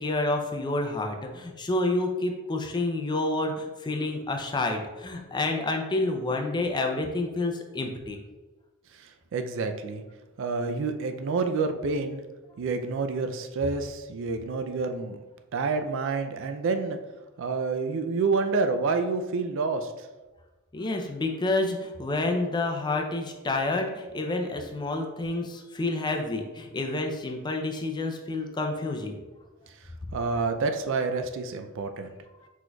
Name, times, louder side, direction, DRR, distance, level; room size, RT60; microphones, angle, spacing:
voice 1, 0.0-8.2 20.7-29.2, left 2 dB, 20° left, 3 dB, 0.4 m, -29 dB
voice 2, 9.0-10.0 10.4-12.2 12.6-15.2 15.5-17.0 17.4-19.9 30.1-32.1, right 4 dB, 60° right, 7 dB, 0.4 m, -28 dB
4.6 x 4.2 x 2.3 m, 1.2 s
head